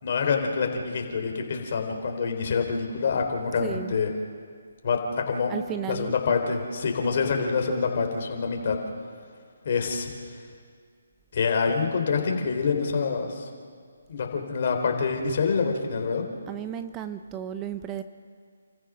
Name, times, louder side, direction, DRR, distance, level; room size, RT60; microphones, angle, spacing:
voice 1, 0.0-4.1 4.8-5.0 5.3-5.5 5.9-8.8 9.6-10.1 11.3-13.5 14.1-16.2, left 5 dB, 45° left, 3 dB, 3.8 m, -26 dB
voice 2, 3.6-3.9 5.5-6.1 16.5-18.0, right 10 dB, 15° right, 10 dB, 0.6 m, -34 dB
29.5 x 15.0 x 6.3 m, 2.1 s
hypercardioid pair, 155°, 0 cm